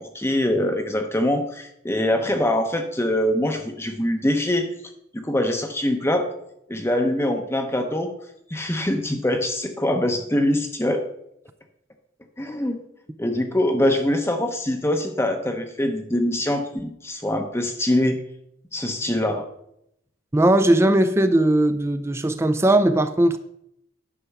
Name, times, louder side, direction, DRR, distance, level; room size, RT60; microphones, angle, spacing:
voice 1, 0.0-4.7 5.1-6.3 6.7-8.1 8.5-11.0 12.4-12.8 13.2-18.2 18.7-19.5, left 1 dB, 10° left, 5 dB, 0.7 m, -23 dB
voice 2, 20.3-23.4, right 1 dB, 15° right, 10 dB, 0.4 m, -18 dB
9.9 x 6.0 x 5.8 m, 0.77 s
head